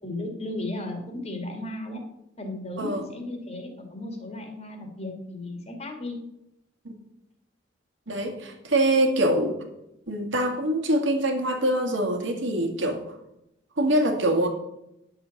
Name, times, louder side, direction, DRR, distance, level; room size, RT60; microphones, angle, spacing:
voice 1, 0.0-2.0 2.4-6.2, left 2 dB, 35° left, 4 dB, 2.1 m, -35 dB
voice 2, 8.1-9.6 10.1-13.0 13.8-14.5, right 1 dB, 80° right, 3 dB, 2.1 m, -24 dB
10.0 x 7.1 x 7.1 m, 0.84 s
head